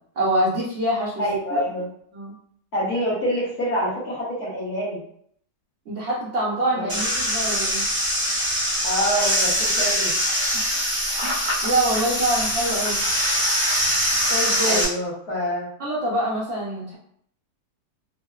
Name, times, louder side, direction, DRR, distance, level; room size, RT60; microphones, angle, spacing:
voice 1, 0.2-1.2 1.5-1.6 2.1-2.3 5.9-7.8 11.2-13.0 14.3-14.8 15.8-17.0, right 1 dB, 60° right, -6 dB, 0.8 m, -25 dB
voice 2, 1.2-1.8 2.7-5.0 6.7-7.0 8.8-10.1 14.6-15.7, equal, 65° left, -9 dB, 1.3 m, -26 dB
sound 1, 6.9-14.8, equal, 20° right, 0.5 m, -23 dB
3.6 x 2.0 x 2.3 m, 0.66 s
omnidirectional pair, 1.9 m